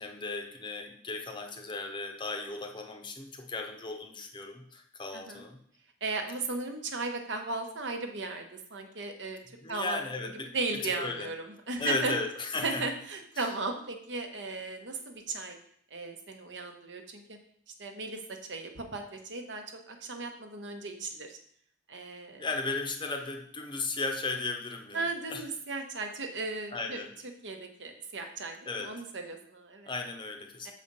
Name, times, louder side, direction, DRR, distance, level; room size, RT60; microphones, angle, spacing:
voice 1, 0.0-5.6 9.6-10.5 10.8-11.3 11.8-12.8 13.4-13.5 22.4-25.0 25.3-25.4 26.7-27.1 28.7-28.9 29.9-30.7, left 3 dB, 25° left, 5 dB, 0.7 m, -35 dB
voice 2, 6.0-9.4 9.7-10.0 10.5-12.1 12.6-15.6 15.9-17.4 17.8-21.4 21.9-22.5 24.9-27.0 27.4-29.9 30.6-30.7, right 3 dB, 70° right, 5 dB, 0.9 m, -36 dB
6.6 x 4.2 x 5.3 m, 0.64 s
head